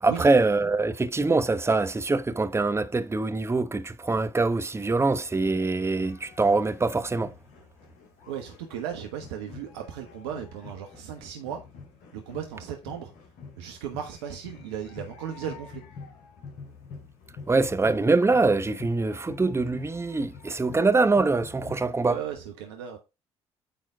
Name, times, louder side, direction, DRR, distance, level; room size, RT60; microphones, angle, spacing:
voice 1, 0.0-7.3 17.5-22.2, right 3 dB, 20° right, 1.0 m, -24 dB
sound 1, 5.3-22.0, left 5 dB, 70° left, 2.3 m, -47 dB
voice 2, 8.3-11.6 12.1-13.1 13.6-15.8 22.0-23.0, right 9 dB, 80° right, 1.2 m, -36 dB
9.2 x 4.0 x 4.5 m
hypercardioid pair, 50°, 14 cm